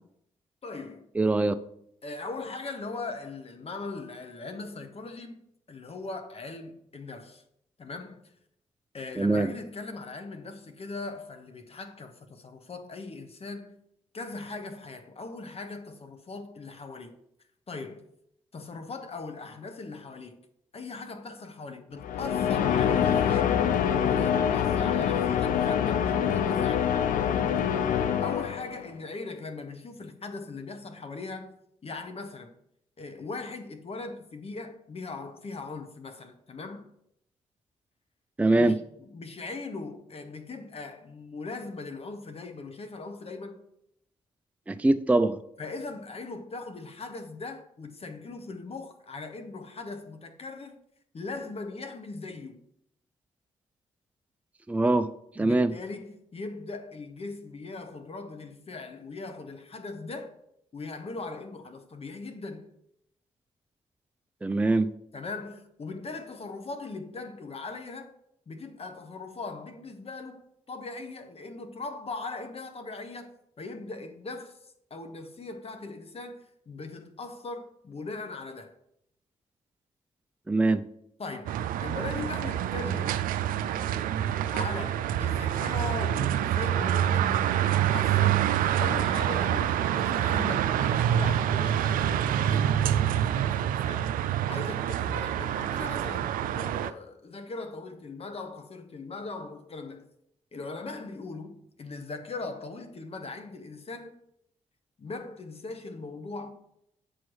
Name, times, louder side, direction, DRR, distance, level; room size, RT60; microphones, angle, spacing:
voice 1, 0.6-1.1 2.0-7.4 7.8-8.3 8.9-13.8 14.1-17.1 17.7-18.0 18.5-20.4 20.7-23.5 24.0-26.9 28.2-32.5 33.0-36.9 38.6-43.6 45.6-50.8 51.1-52.6 55.4-60.3 60.7-62.7 65.1-68.1 68.5-70.4 70.7-74.6 74.9-78.7 81.2-83.2 84.5-94.2 94.5-100.0 100.5-104.2 105.0-106.5, left 3 dB, 45° left, 1.1 m, -40 dB
voice 2, 1.2-1.5 9.2-9.5 38.4-38.8 44.7-45.4 54.7-55.1 55.4-55.7 64.4-64.9 80.5-80.8, right 2 dB, 10° right, 0.4 m, -23 dB
sound 1, 22.0-28.9, left 8 dB, 75° left, 0.5 m, -25 dB
sound 2, 81.5-96.9, right 10 dB, 75° right, 0.4 m, -26 dB
8.1 x 3.1 x 6.2 m
supercardioid pair, 50°, 14 cm